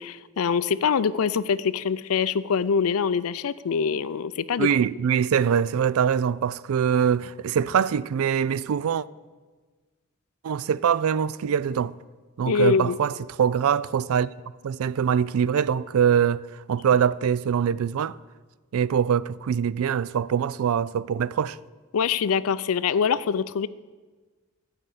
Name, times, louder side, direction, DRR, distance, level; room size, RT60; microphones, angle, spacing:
voice 1, 0.0-4.7 12.5-13.0 21.9-23.7, left 6 dB, 75° left, 0.4 m, -24 dB
voice 2, 4.6-9.1 10.4-12.0 12.4-14.3 14.6-18.2 18.7-21.6, right 8 dB, 75° right, 0.3 m, -23 dB
13.0 x 5.0 x 8.5 m
head